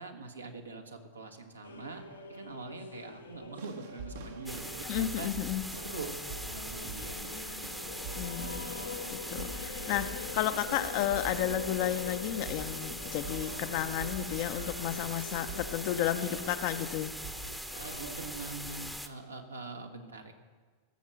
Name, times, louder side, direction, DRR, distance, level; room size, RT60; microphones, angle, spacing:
voice 1, 0.0-2.0 2.3-5.3 5.7-6.1 6.4-7.2 14.7-14.9 17.8-20.3, right 3 dB, 80° right, 4 dB, 1.5 m, -44 dB
sound 1, 1.6-18.5, left 4 dB, 75° left, 1.0 m, -45 dB
sound 2, 3.6-16.8 17.2-17.6 18.4-18.5, right 3 dB, 55° right, 1.1 m, -46 dB
sound 3, 4.5-19.1, equal, ahead, 0.9 m, -41 dB
voice 2, 4.8-5.7 8.2-8.7 9.1-17.1, left 12 dB, 45° left, 10 dB, 0.7 m, -32 dB
16.5 x 7.4 x 6.4 m, 1.5 s
figure-of-eight pair, 90°, 0 cm